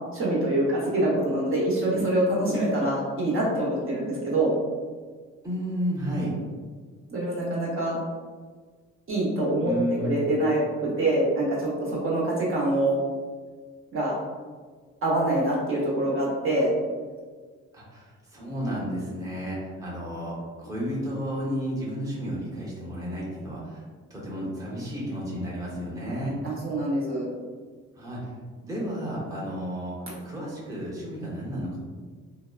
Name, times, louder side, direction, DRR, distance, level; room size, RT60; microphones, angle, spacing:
voice 1, 0.1-4.5 7.1-8.0 9.1-9.7 10.0-13.0 13.9-14.1 15.0-16.7 26.4-27.3, right 1 dB, 45° right, -6 dB, 0.8 m, -25 dB
voice 2, 5.4-6.3 9.6-10.3 17.7-23.8 24.1-26.4 28.0-28.2 28.6-30.0 30.2-31.8, equal, 10° right, -7 dB, 0.8 m, -32 dB
2.8 x 2.1 x 2.3 m, 1.5 s
cardioid pair, 90°, 30 cm